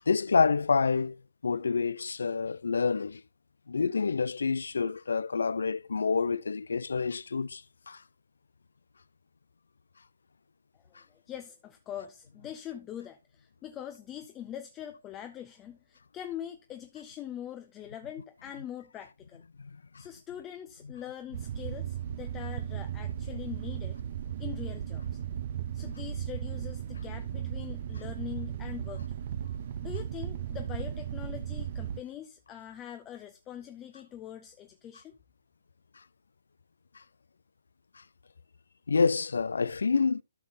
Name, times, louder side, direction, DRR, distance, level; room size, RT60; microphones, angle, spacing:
voice 1, 0.1-1.2 1.4-3.2 3.7-8.0 11.0-11.1 19.6-19.7 36.9-37.0 38.0-38.1 38.9-40.2, left 5 dB, 75° left, 0.4 m, -28 dB
voice 2, 11.1-19.4 20.0-24.0 24.4-25.2 25.7-29.2 29.8-35.1, left 10 dB, 20° left, 0.6 m, -43 dB
sound 1, 21.3-32.0, right 10 dB, 50° right, 0.6 m, -36 dB
13.0 x 5.5 x 2.6 m
figure-of-eight pair, 135°, 0 cm